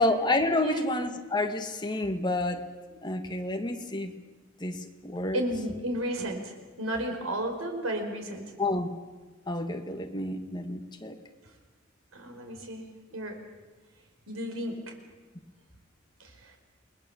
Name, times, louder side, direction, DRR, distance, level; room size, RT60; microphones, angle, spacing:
voice 1, 0.0-2.7 3.0-4.1 4.6-5.4 8.6-8.9 9.5-11.2, left 2 dB, 20° left, 5 dB, 2.0 m, -29 dB
voice 2, 5.3-6.5 6.8-8.5 12.1-12.8 13.1-13.4 14.3-14.9 16.2-16.3, right 1 dB, 85° right, 4 dB, 4.9 m, -33 dB
29.0 x 21.0 x 7.2 m, 1.3 s
head